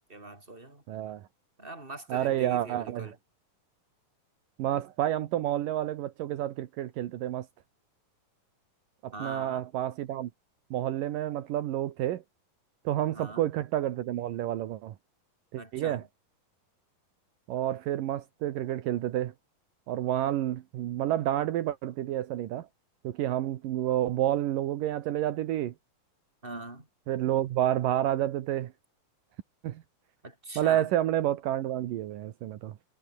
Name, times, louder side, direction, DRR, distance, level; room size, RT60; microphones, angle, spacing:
voice 1, 0.1-0.8 1.6-3.2 9.1-9.6 13.1-13.5 15.6-16.0 26.4-26.9 30.2-30.9, right 2 dB, 15° right, 5.5 m, -42 dB
voice 2, 0.9-1.3 2.1-3.1 4.6-7.5 9.0-10.3 10.7-12.2 12.8-15.0 15.5-16.0 17.5-19.3 19.9-22.7 23.0-25.7 27.1-28.7 29.6-29.8 30.6-32.8, right 12 dB, 75° right, 2.8 m, -29 dB
omnidirectional pair, 4.0 m